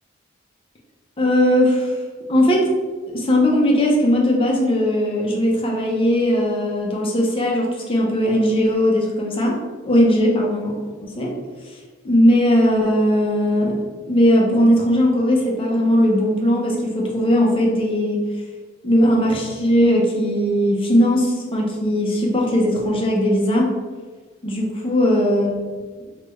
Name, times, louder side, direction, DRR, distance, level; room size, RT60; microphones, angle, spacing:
voice 1, 1.2-1.9 2.3-2.7 3.1-9.6 9.8-10.8 11.0-11.3 12.0-13.8 14.1-18.2 18.8-23.7 24.4-25.6, equal, 25° left, -2 dB, 0.5 m, -18 dB
3.1 x 2.3 x 3.1 m, 1.4 s
head